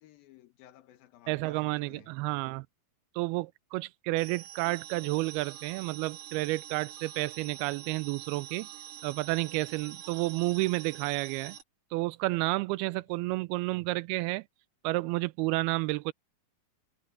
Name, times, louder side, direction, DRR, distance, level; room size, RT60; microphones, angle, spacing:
voice 1, 0.0-2.1 12.9-13.4, left 12 dB, 75° left, 3.0 m, -57 dB
voice 2, 1.3-2.7 3.2-8.7 9.0-11.6 11.9-14.4 14.8-16.1, right 21 dB, 90° right, 2.5 m, -31 dB
sound 1, 4.2-11.6, right 10 dB, 60° right, 3.1 m, -46 dB
omnidirectional pair, 4.4 m